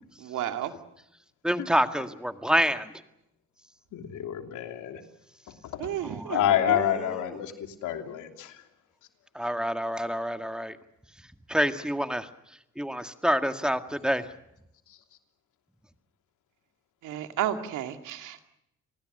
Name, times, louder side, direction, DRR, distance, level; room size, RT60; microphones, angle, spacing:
voice 1, 0.3-0.7 5.8-6.4 17.0-18.5, right 11 dB, 85° right, 7 dB, 2.3 m, -32 dB
voice 2, 1.4-2.9 6.3-6.4 9.4-10.8 11.5-12.3 12.8-14.2, equal, 5° right, 8 dB, 1.8 m, -27 dB
voice 3, 3.9-5.0 5.5-6.0 6.3-8.7 14.9-15.0, left 10 dB, 85° left, 5 dB, 3.1 m, -29 dB
29.5 x 20.0 x 6.7 m, 0.82 s
cardioid pair, 90°, 30 cm